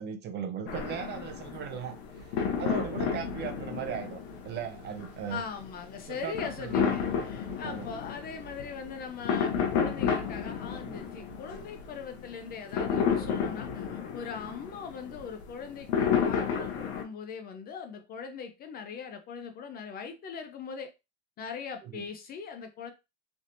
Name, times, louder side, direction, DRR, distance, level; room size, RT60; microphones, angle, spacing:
voice 1, 0.0-2.2 2.6-5.4 6.1-6.9 7.6-7.9 21.8-22.1, right 8 dB, 35° right, 0.5 m, -38 dB
sound 1, 0.7-17.0, left 7 dB, 85° left, 1.0 m, -32 dB
voice 2, 5.3-20.9 21.4-22.9, left 6 dB, 30° left, 0.5 m, -40 dB
3.4 x 2.7 x 2.6 m
supercardioid pair, 130°, 32 cm